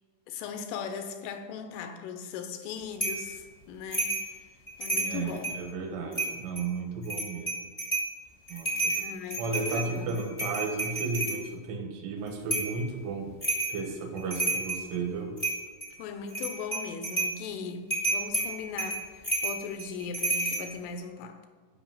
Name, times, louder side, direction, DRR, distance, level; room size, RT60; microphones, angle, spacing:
voice 1, 0.3-4.2 4.8-5.6 9.0-10.3 16.0-21.4, left 5 dB, 90° left, 7 dB, 3.4 m, -39 dB
sound 1, 3.0-3.3 3.9-4.3 4.7-5.6 6.1-6.6 7.0-8.1 8.5-11.4 12.5-12.8 13.4-13.8 14.2-14.9 15.4-15.9 16.3-17.4 17.9-20.6, right 2 dB, 50° left, 0.4 m, -30 dB
voice 2, 4.9-7.6 8.5-9.0 9.4-13.3 13.7-15.3, right 4 dB, 80° right, 2 dB, 3.7 m, -34 dB
11.0 x 5.5 x 7.4 m, 1.5 s
omnidirectional pair, 5.6 m